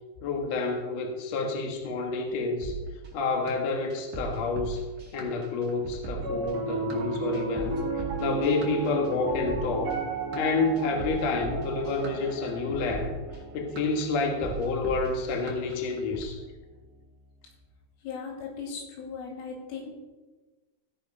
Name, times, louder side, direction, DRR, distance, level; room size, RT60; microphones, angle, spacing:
voice 1, 0.2-2.7 3.1-4.8 5.1-10.0 10.3-13.1 13.5-16.4, left 3 dB, 75° left, 2 dB, 1.5 m, -29 dB
sound 1, 2.6-16.3, right 3 dB, 80° right, 0.7 m, -39 dB
Piano, 6.1-16.5, right 5 dB, 45° right, 2.5 m, -35 dB
voice 2, 18.0-19.9, left 5 dB, 90° left, -2 dB, 5.0 m, -38 dB
15.5 x 5.7 x 5.3 m, 1.3 s
omnidirectional pair, 5.5 m